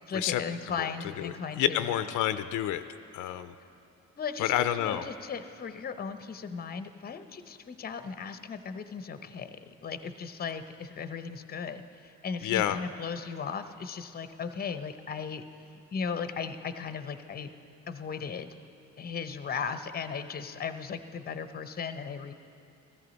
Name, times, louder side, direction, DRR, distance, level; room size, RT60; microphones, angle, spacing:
voice 1, 0.1-1.9 4.2-15.4 15.9-17.5 17.9-18.5 19.0-22.3, left 6 dB, 30° left, 10 dB, 0.7 m, -37 dB
voice 2, 1.6-2.8 3.1-3.5 4.4-5.0 12.4-12.8, left 12 dB, 85° left, 12 dB, 0.5 m, -28 dB
15.5 x 13.5 x 4.0 m, 2.5 s
cardioid pair, 90°, 30 cm